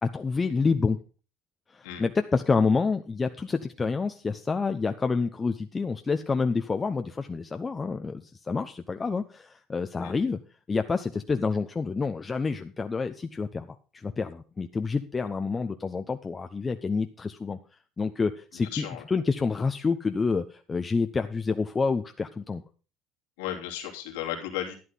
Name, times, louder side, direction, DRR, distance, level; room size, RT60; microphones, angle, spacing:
voice 1, 0.0-1.0 1.7-10.4 10.7-17.6 18.0-22.6, left 4 dB, 25° left, 8 dB, 0.9 m, -28 dB
voice 2, 18.7-19.0 23.4-24.8, left 10 dB, 80° left, 2 dB, 2.9 m, -34 dB
11.5 x 10.5 x 4.0 m, 0.36 s
hypercardioid pair, 70°, 0 cm